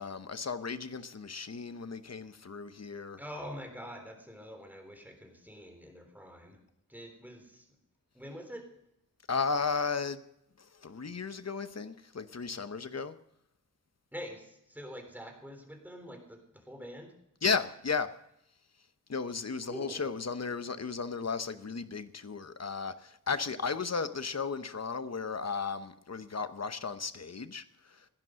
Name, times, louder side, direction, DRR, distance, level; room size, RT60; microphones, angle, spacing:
voice 1, 0.0-3.2 9.3-10.2 10.6-13.2 17.4-18.1 19.1-28.1, left 5 dB, 55° left, 0.9 m, -35 dB
voice 2, 3.2-6.6 6.9-7.7 8.1-8.7 14.1-17.2 19.7-20.1, equal, 5° right, 3.5 m, -45 dB
16.5 x 10.5 x 6.4 m
wide cardioid pair, 70°, 32 cm